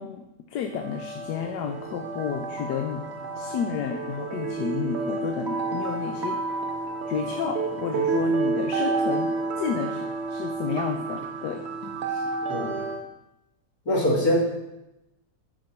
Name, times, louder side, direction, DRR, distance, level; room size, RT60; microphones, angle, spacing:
voice 1, 0.0-3.1 3.3-6.4 7.1-12.3, left 7 dB, 90° left, 5 dB, 1.2 m, -32 dB
sound 1, 0.7-13.1, right 3 dB, 55° right, 0.8 m, -30 dB
voice 2, 13.9-14.3, left 1 dB, 65° left, -3 dB, 2.4 m, -23 dB
9.2 x 5.1 x 4.3 m, 0.93 s
omnidirectional pair, 1.7 m